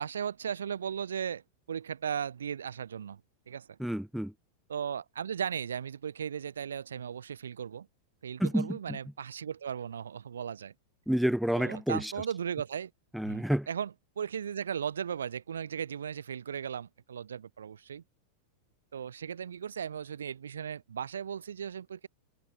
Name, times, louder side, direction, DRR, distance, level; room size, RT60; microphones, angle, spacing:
voice 1, 0.0-1.4 1.7-3.2 3.5-3.8 4.7-7.9 8.2-10.7 11.5-12.9 13.2-18.0 18.9-22.1, right 8 dB, 65° right, 1.2 m, -36 dB
voice 2, 3.8-4.3 8.4-8.8 11.1-12.1 13.1-13.7, equal, ahead, 0.9 m, -29 dB
figure-of-eight pair, 90°, 0 cm